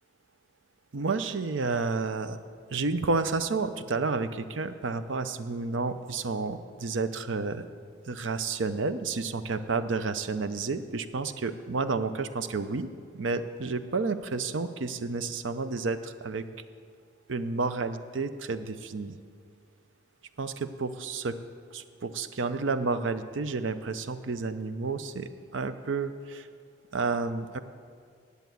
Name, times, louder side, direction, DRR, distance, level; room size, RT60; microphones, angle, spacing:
voice 1, 0.9-2.4 2.7-7.7 8.1-16.5 17.3-19.2 20.4-21.4 21.7-26.5 26.9-27.6, right 4 dB, 75° right, 11 dB, 0.6 m, -31 dB
10.5 x 8.1 x 9.3 m, 2.1 s
head